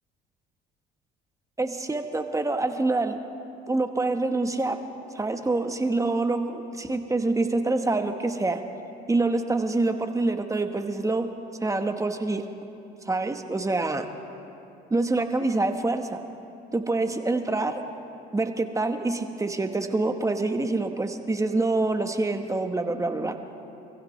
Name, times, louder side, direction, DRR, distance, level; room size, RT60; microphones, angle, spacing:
voice 1, 1.6-3.2 3.7-4.8 5.1-8.6 9.1-11.3 11.6-12.4 13.1-14.1 14.9-16.2 16.7-17.8 18.3-23.4, right 2 dB, 15° right, 6 dB, 1.2 m, -26 dB
26.0 x 15.5 x 3.2 m, 2.8 s
supercardioid pair, 80°, 21 cm